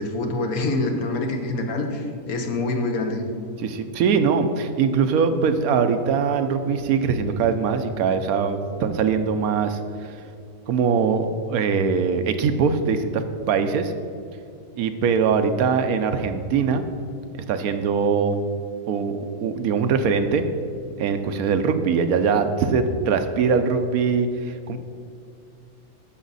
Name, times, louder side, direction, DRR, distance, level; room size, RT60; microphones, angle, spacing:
voice 1, 0.0-3.2, left 2 dB, 75° left, 4 dB, 1.4 m, -25 dB
voice 2, 3.6-9.8 10.7-13.9 14.8-16.8 17.5-18.4 18.9-20.4 21.0-24.8, right 5 dB, 80° right, 8 dB, 1.1 m, -22 dB
10.0 x 7.1 x 4.0 m, 2.4 s
omnidirectional pair, 1.6 m